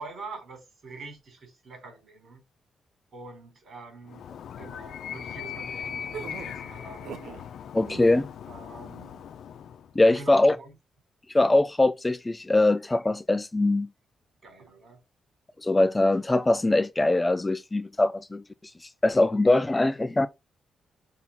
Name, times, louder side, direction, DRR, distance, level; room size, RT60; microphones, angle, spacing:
voice 1, 0.0-2.4 3.1-4.3 4.6-7.2 8.5-9.3 10.1-10.8 14.4-15.0, right 3 dB, 55° right, 4.2 m, -44 dB
Animal, 4.1-9.9, left 8 dB, 75° left, 0.7 m, -39 dB
sound 1, 6.1-7.4 7.8-8.3, right 7 dB, 85° right, 0.7 m, -41 dB
voice 2, 7.7-8.3 10.0-10.6 11.3-13.9 15.6-18.4 19.0-20.3, left 2 dB, 15° left, 0.4 m, -22 dB
5.7 x 4.0 x 4.2 m
cardioid pair, 105°, 0 cm